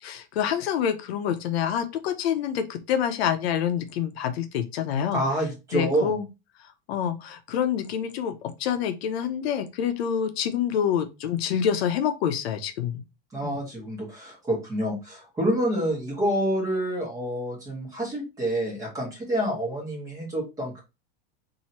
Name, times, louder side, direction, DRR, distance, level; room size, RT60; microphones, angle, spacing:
voice 1, 0.0-5.2 5.7-6.3 6.9-13.0 13.4-13.6, left 8 dB, 75° left, 0.7 m, -27 dB
voice 2, 5.1-6.2 13.3-20.8, right 1 dB, 10° right, 1.3 m, -28 dB
3.0 x 2.7 x 4.2 m
supercardioid pair, 175°, 32 cm